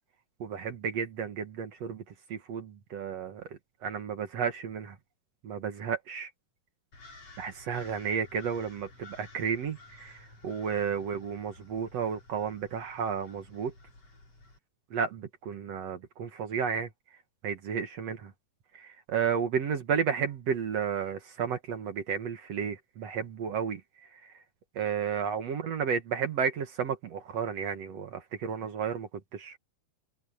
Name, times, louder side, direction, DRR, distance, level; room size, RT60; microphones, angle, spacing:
voice 1, 0.4-2.0 2.3-3.4 3.8-5.0 5.4-6.3 7.4-10.1 10.4-13.7 14.9-16.9 17.4-18.3 18.7-23.8 24.2-24.3 24.8-29.6, right 7 dB, 55° right, 2.3 m, -32 dB
sound 1, 6.9-14.6, left 2 dB, 45° left, 8.0 m, -53 dB
omnidirectional pair, 4.0 m